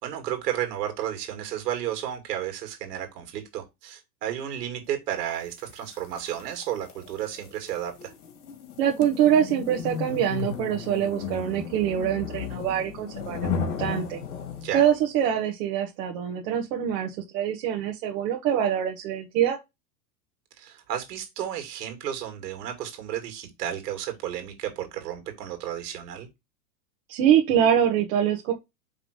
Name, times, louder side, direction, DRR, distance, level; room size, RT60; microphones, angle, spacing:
voice 1, 0.0-8.1 14.6-14.8 20.6-26.3, right 10 dB, 70° right, 2.6 m, -32 dB
sound 1, 5.6-14.9, left 6 dB, 70° left, 2.4 m, -35 dB
voice 2, 8.8-13.5 13.8-14.2 14.7-19.6 27.1-28.5, right 9 dB, 55° right, 1.5 m, -24 dB
5.3 x 3.8 x 5.0 m
hypercardioid pair, 115°, 49 cm